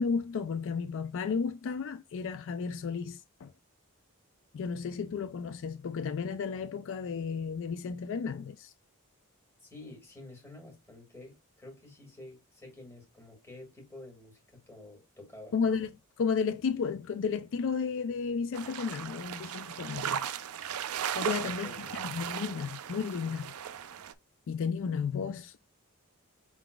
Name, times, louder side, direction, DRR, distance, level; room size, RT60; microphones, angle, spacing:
voice 1, 0.0-3.5 4.5-8.7 15.5-15.9 16.2-20.2 21.1-23.5 24.5-25.6, left 5 dB, 60° left, 0.3 m, -33 dB
voice 2, 9.6-15.6 21.3-22.2, left 2 dB, 10° left, 2.0 m, -50 dB
sound 1, 18.5-24.1, right 9 dB, 75° right, 0.4 m, -37 dB
5.9 x 3.8 x 2.2 m
head